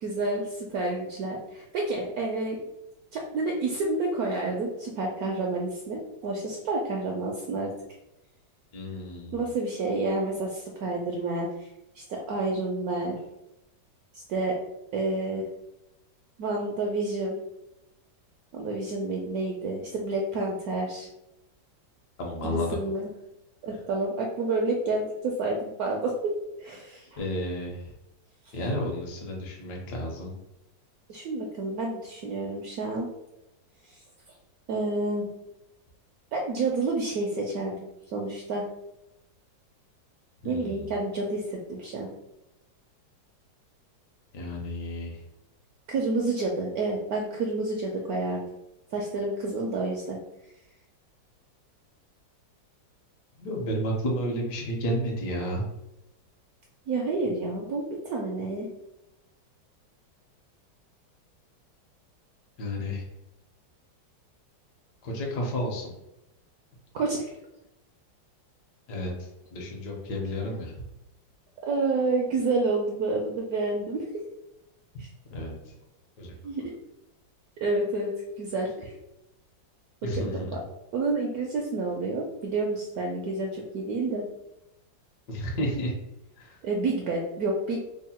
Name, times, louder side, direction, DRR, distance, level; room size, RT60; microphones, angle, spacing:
voice 1, 0.0-2.6 3.1-7.7 9.3-11.7 11.9-13.2 14.1-14.5 14.9-15.4 16.4-17.4 18.5-21.1 22.4-23.1 23.6-26.1 26.6-27.2 28.4-28.6 31.1-33.1 33.9-34.0 34.7-35.3 36.3-37.8 38.1-38.7 40.4-42.1 45.9-48.5 48.9-50.2 56.9-58.7 66.9-67.3 71.6-74.0 75.0-75.1 76.4-76.7 77.6-78.9 80.0-80.2 80.9-84.2 86.6-87.8, right 3 dB, 75° right, 0 dB, 0.9 m, -29 dB
voice 2, 8.7-9.5 22.2-22.8 27.2-27.8 28.5-30.3 40.4-40.9 44.3-45.2 53.4-55.6 62.6-63.0 65.0-65.9 68.9-70.7 75.3-75.5 76.2-76.3 80.0-80.5 85.3-85.9 86.4-86.6, equal, 65° left, -1 dB, 1.3 m, -31 dB
3.5 x 2.1 x 4.2 m, 0.88 s
omnidirectional pair, 2.0 m